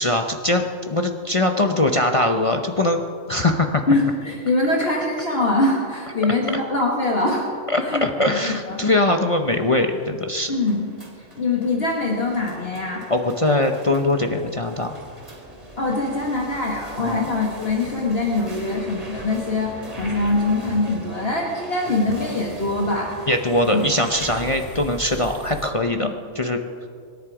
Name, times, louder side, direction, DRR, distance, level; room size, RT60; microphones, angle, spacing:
voice 1, 0.0-3.0 3.3-3.8 7.7-10.5 13.1-14.9 17.0-17.3 23.3-26.1 26.3-26.6, left 1 dB, 30° left, 4 dB, 0.7 m, -21 dB
voice 2, 3.9-7.5 7.8-8.3 8.7-8.8 10.5-10.9 11.4-13.0 15.8-23.1 23.7-23.8 25.9-26.1, left 2 dB, 50° left, -2 dB, 2.0 m, -23 dB
sound 1, 7.1-25.7, right 1 dB, 30° right, 2.6 m, -40 dB
25.0 x 10.5 x 4.9 m, 2.2 s
omnidirectional pair, 1.4 m